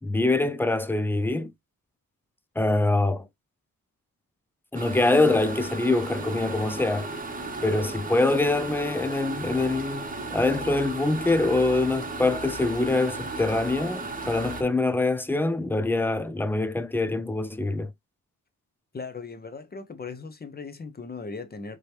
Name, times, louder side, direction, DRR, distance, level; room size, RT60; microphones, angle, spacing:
voice 1, 0.0-1.5 2.6-3.3 4.7-7.1 7.6-17.9, left 2 dB, 5° left, 0.3 m, -24 dB
sound 1, 4.7-14.6, right 3 dB, 25° right, 0.9 m, -35 dB
voice 2, 18.9-21.8, left 4 dB, 30° left, 0.7 m, -38 dB
4.9 x 3.0 x 3.2 m
wide cardioid pair, 150°, 34 cm